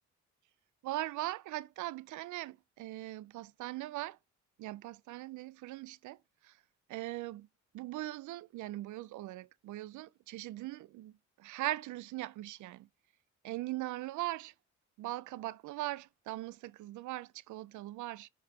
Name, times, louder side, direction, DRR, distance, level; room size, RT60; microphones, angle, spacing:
voice 1, 0.8-4.2 4.6-6.6 6.9-7.5 7.7-11.1 11.4-12.9 13.4-14.5 15.0-18.3, right 17 dB, 75° right, 0.5 m, -40 dB
11.5 x 3.8 x 2.8 m
cardioid pair, 90°, 30 cm